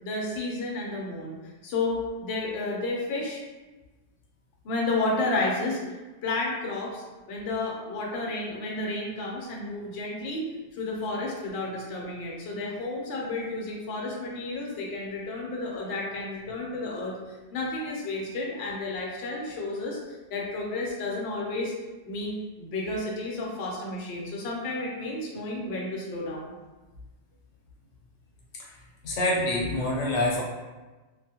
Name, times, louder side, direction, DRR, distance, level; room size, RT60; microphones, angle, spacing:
voice 1, 0.0-3.4 4.6-10.4 10.7-21.7 22.1-26.5, left 2 dB, 65° left, -3 dB, 0.8 m, -32 dB
voice 2, 29.0-30.4, left 1 dB, 90° left, -3 dB, 1.0 m, -26 dB
2.4 x 2.2 x 2.7 m, 1.2 s
omnidirectional pair, 1.2 m